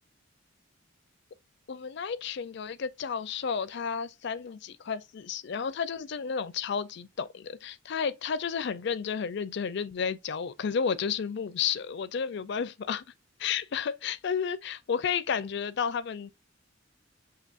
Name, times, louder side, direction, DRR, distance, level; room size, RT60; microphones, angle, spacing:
voice 1, 1.7-13.0 13.4-16.3, left 6 dB, 60° left, 0.4 m, -32 dB
6.6 x 2.8 x 2.5 m
head